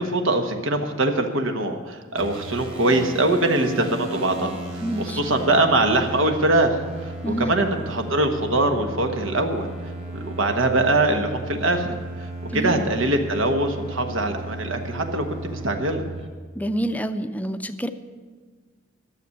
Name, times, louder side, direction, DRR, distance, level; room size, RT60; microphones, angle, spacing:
voice 1, 0.0-4.6 5.0-9.7 10.1-16.0, right 2 dB, 80° right, 5 dB, 1.3 m, -23 dB
sound 1, 2.2-16.3, right 1 dB, 25° right, 1.7 m, -35 dB
voice 2, 4.8-5.2 7.2-7.6 12.5-12.9 16.6-17.9, right 1 dB, 10° left, 10 dB, 0.5 m, -27 dB
12.5 x 7.0 x 9.7 m, 1.5 s
head